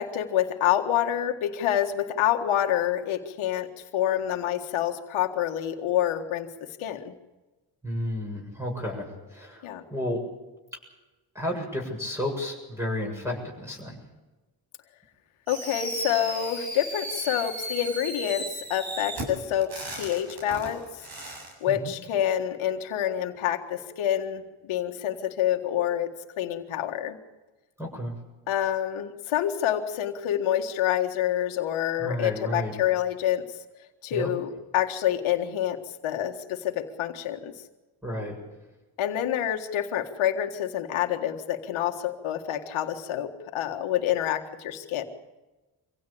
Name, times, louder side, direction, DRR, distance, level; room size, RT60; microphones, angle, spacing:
voice 1, 0.0-3.7 3.9-6.5 6.8-7.1 9.6-9.8 15.5-21.0 21.6-26.1 26.4-27.2 28.5-33.4 34.0-37.5 39.0-45.1, left 11 dB, 90° left, 4 dB, 1.8 m, -27 dB
voice 2, 7.8-10.2 11.3-14.0 21.7-21.9 27.8-28.2 32.0-32.8 34.1-34.3 38.0-38.4, left 1 dB, 5° right, -1 dB, 7.5 m, -32 dB
Fireworks, 15.5-21.5, right 1 dB, 50° right, 7.7 m, -35 dB
25.0 x 16.5 x 8.7 m, 1.1 s
cardioid pair, 65°, 47 cm